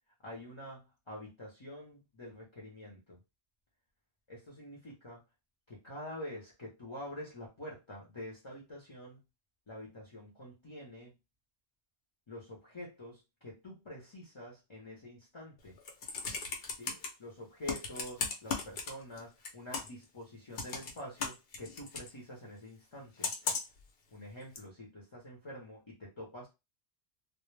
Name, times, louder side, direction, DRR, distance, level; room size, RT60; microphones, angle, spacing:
voice 1, 0.2-3.2 4.3-5.2 5.7-9.2 9.7-11.1 12.3-15.8 16.8-23.3 24.1-26.5, left 1 dB, 30° left, -4 dB, 0.6 m, -47 dB
Computer keyboard, 15.7-17.1 17.7-19.2 19.4-20.0 20.6-22.1 23.2-23.8 24.6-24.7, left 4 dB, 60° left, 0.8 m, -36 dB
2.1 x 2.0 x 3.1 m, 0.25 s
omnidirectional pair, 1.2 m